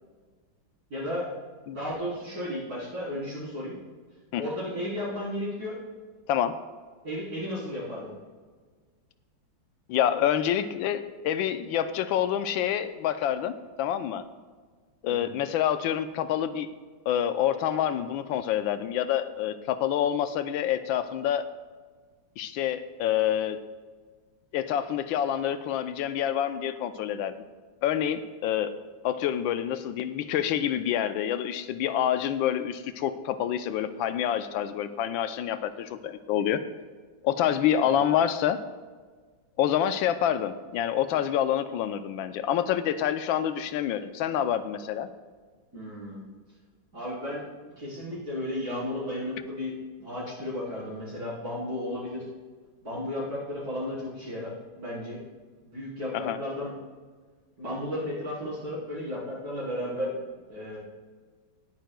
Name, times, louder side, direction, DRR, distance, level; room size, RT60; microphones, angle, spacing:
voice 1, 0.9-1.3 1.7-3.8 4.4-5.7 7.0-8.1 15.1-15.3 37.8-37.9 45.7-46.2 46.9-47.4 47.8-49.7 50.0-52.2 52.8-54.5 54.8-55.2 55.6-56.7 57.6-60.1 60.5-60.8, left 1 dB, 50° right, -10 dB, 4.3 m, -34 dB
voice 2, 9.9-13.5 13.8-14.2 15.0-16.7 17.1-21.5 22.4-23.6 24.5-27.3 27.8-28.7 29.0-36.6 37.2-38.6 39.6-45.1 56.1-56.4, left 10 dB, 85° left, 11 dB, 1.4 m, -27 dB
19.5 x 8.9 x 2.3 m, 1.5 s
omnidirectional pair, 2.1 m